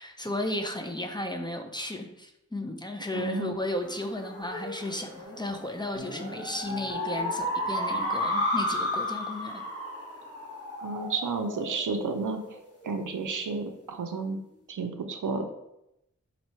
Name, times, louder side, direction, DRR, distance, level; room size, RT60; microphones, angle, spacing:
voice 1, 0.0-9.6, left 1 dB, 15° left, 4 dB, 0.4 m, -34 dB
voice 2, 3.1-3.6 10.8-12.4 12.8-14.4 14.7-15.5, right 4 dB, 85° right, 6 dB, 0.5 m, -31 dB
sound 1, 3.8-12.7, left 1 dB, 50° left, 1.1 m, -33 dB
3.0 x 2.7 x 4.3 m, 0.85 s
wide cardioid pair, 55°, 30 cm